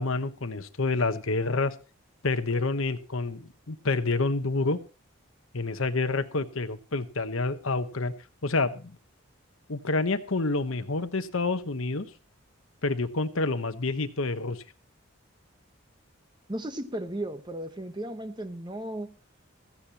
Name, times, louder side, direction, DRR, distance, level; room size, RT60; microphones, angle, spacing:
voice 1, 0.0-1.7 2.2-4.8 5.5-8.1 8.4-9.0 9.7-12.1 12.8-14.6, left 3 dB, 75° left, 10 dB, 1.1 m, -28 dB
voice 2, 16.5-19.1, right 1 dB, 20° right, 9 dB, 1.1 m, -35 dB
17.0 x 14.5 x 3.0 m, 0.32 s
head